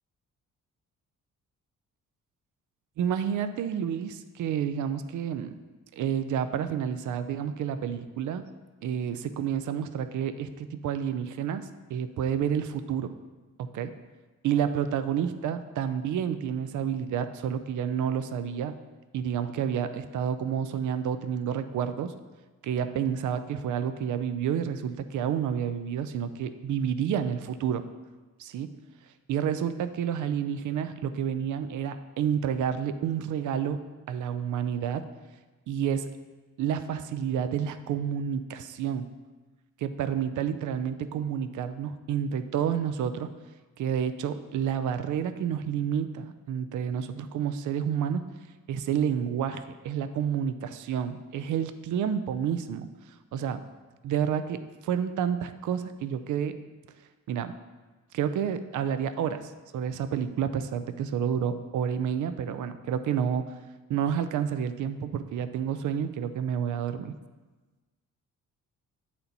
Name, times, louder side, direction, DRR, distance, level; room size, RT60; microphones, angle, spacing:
voice 1, 3.0-5.5 5.9-8.4 8.8-13.1 13.6-13.9 14.4-18.8 19.1-22.1 22.6-27.8 28.4-28.7 29.3-33.8 34.1-35.1 35.7-36.1 36.6-39.1 39.8-43.3 43.8-48.2 48.7-52.9 53.3-53.6 54.0-56.6 57.3-57.5 58.1-63.4 63.9-67.1, right 8 dB, 70° right, 11 dB, 0.5 m, -29 dB
8.5 x 4.3 x 4.0 m, 1.3 s
cardioid pair, 145°, 31 cm